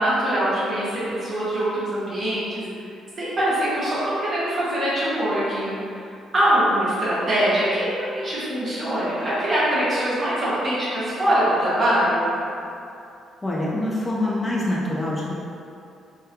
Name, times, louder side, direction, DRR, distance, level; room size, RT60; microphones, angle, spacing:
voice 1, 0.0-2.6 3.2-5.7 6.3-12.3, right 1 dB, 40° right, -10 dB, 1.3 m, -23 dB
voice 2, 13.4-15.3, left 1 dB, 25° left, -5 dB, 0.4 m, -25 dB
3.4 x 2.2 x 2.9 m, 2.6 s
cardioid pair, 90°, 0 cm